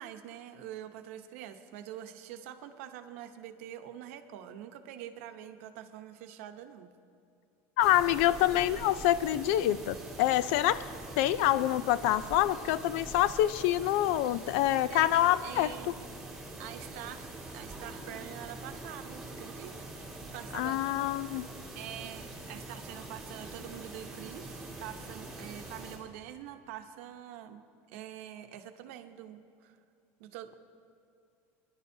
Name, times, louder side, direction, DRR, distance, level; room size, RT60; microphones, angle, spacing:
voice 1, 0.0-6.9 14.9-16.0 16.6-19.9 20.3-20.8 21.7-29.8 30.2-30.5, right 11 dB, 85° right, 7 dB, 0.9 m, -45 dB
voice 2, 7.8-10.9 11.2-15.7 20.5-21.5, left 13 dB, 70° left, 16 dB, 0.4 m, -26 dB
sound 1, 7.8-26.0, right 2 dB, ahead, 1.9 m, -44 dB
29.0 x 10.5 x 2.7 m, 2.5 s
cardioid pair, 175°, 7 cm